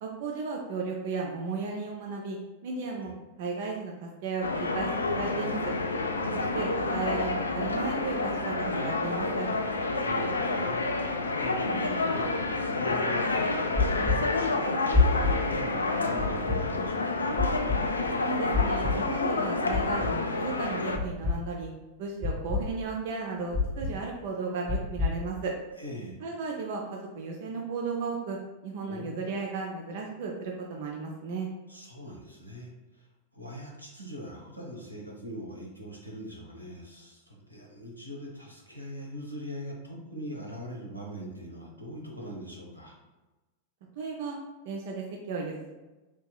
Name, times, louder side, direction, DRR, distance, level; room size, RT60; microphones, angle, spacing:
voice 1, 0.0-2.4 2.6-3.1 3.4-4.9 5.1-5.6 6.3-9.5 18.2-21.7 22.0-25.5 26.2-28.4 28.6-31.5 44.0-44.4 44.7-45.8, right 4 dB, 50° right, 0 dB, 0.4 m, -34 dB
sound 1, 4.4-21.0, left 3 dB, 75° left, 0.3 m, -29 dB
voice 2, 6.2-6.5 9.7-17.3 25.8-26.2 28.9-29.2 31.7-32.7 33.3-42.9, equal, 90° right, -2 dB, 0.8 m, -42 dB
sound 2, 13.8-14.2 14.9-15.3 16.2-16.6 17.4-17.8 18.5-18.9 19.7-20.1 20.9-21.3 22.2-22.6 23.5-23.9 24.7-25.1, left 4 dB, 25° right, 1.4 m, -25 dB
4.5 x 2.8 x 2.2 m, 1.1 s
figure-of-eight pair, 90°, 0 cm